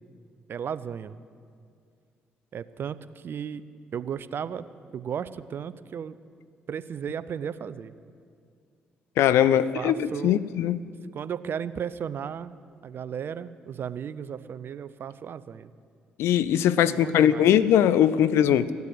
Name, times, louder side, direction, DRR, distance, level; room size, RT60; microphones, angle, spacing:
voice 1, 0.5-1.1 2.5-3.6 3.9-4.7 4.9-6.2 6.7-7.9 9.4-10.4 11.1-12.6 12.8-15.7 16.8-17.5, right 8 dB, 55° right, 0.6 m, -35 dB
voice 2, 9.2-10.9 16.2-18.7, left 10 dB, 70° left, 0.5 m, -21 dB
15.0 x 9.4 x 7.9 m
hypercardioid pair, 50°, 5 cm